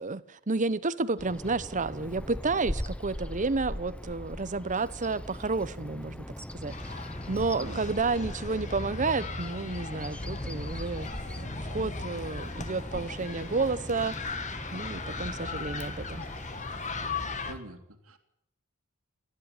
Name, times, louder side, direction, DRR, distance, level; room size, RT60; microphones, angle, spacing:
voice 1, 0.0-6.3 6.5-14.3 14.7-16.3, right 3 dB, 35° right, 0.9 m, -31 dB
Bird vocalization bird call bird song, 1.2-17.6, equal, 5° left, 0.8 m, -41 dB
sound 1, 6.7-17.5, left 3 dB, 35° left, 2.0 m, -38 dB
voice 2, 17.4-18.2, right 1 dB, 85° right, 2.8 m, -44 dB
27.5 x 11.0 x 9.9 m
head